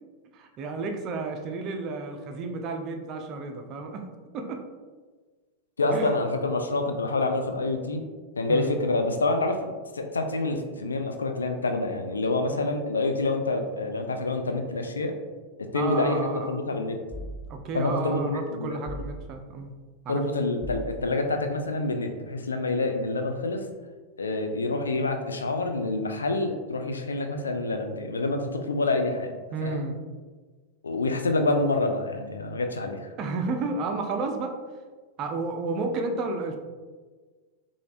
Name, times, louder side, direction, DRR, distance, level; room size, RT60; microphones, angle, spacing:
voice 1, 0.3-4.0 4.3-4.6 5.9-6.1 8.5-8.8 15.7-16.6 17.5-19.7 20.0-20.2 29.5-30.0 33.2-34.5 35.2-36.6, right 3 dB, 35° right, 4 dB, 0.4 m, -31 dB
voice 2, 5.8-8.0 8.4-9.6 9.9-15.1 15.7-17.0 17.7-18.8 20.1-23.7 24.2-29.3 29.6-29.8 30.8-33.1, left 2 dB, 75° left, 5 dB, 0.3 m, -27 dB
sound 1, 17.1-17.9 18.8-19.6 20.6-21.4, right 1 dB, 15° left, 1.3 m, -39 dB
3.2 x 2.5 x 2.4 m, 1.4 s
figure-of-eight pair, 90°, 0 cm